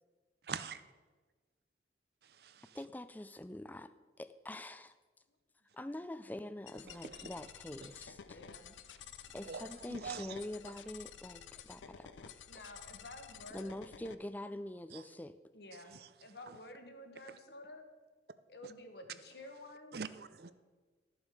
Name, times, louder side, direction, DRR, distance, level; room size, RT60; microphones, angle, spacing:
voice 1, 0.4-0.8 2.2-2.8 6.9-7.5 7.8-8.0 9.1-10.7 14.9-15.1 15.9-16.1 16.5-16.6 19.9-20.5, right 6 dB, 55° right, 0.5 m, -46 dB
voice 2, 2.7-3.9 4.2-4.9 5.7-8.4 9.3-12.4 13.5-15.3, left 1 dB, 10° left, 0.3 m, -45 dB
sound 1, 6.7-14.2, left 8 dB, 85° left, 0.5 m, -52 dB
voice 3, 8.2-9.8 12.5-13.8 15.5-17.8 18.5-20.0, left 1 dB, 60° left, 1.3 m, -52 dB
13.5 x 7.3 x 4.9 m
head